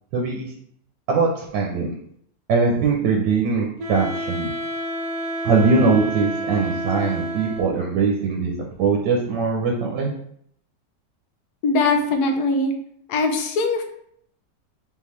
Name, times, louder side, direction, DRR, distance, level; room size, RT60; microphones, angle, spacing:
voice 1, 0.1-0.5 1.1-1.9 2.5-4.5 5.4-8.5 8.8-10.1, right 4 dB, 85° right, 0 dB, 1.4 m, -21 dB
Wind instrument woodwind instrument, 3.8-7.9, right 1 dB, 60° right, 1.4 m, -29 dB
voice 2, 11.6-12.7 13.1-13.8, left 3 dB, 70° left, 4 dB, 1.2 m, -21 dB
3.8 x 3.8 x 3.1 m, 0.67 s
omnidirectional pair, 1.9 m